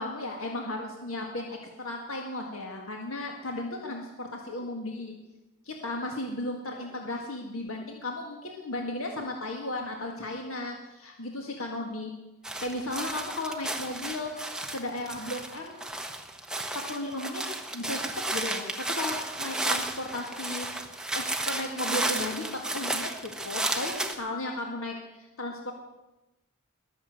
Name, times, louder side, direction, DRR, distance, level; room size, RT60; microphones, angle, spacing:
voice 1, 0.0-5.1 5.7-12.1 12.6-14.3 14.7-15.8 16.9-17.4 17.7-20.7 21.1-25.7, left 2 dB, 75° left, 1 dB, 1.8 m, -35 dB
sound 1, 12.4-24.1, right 2 dB, 5° right, 1.1 m, -33 dB
21.0 x 7.2 x 7.8 m, 1.0 s
head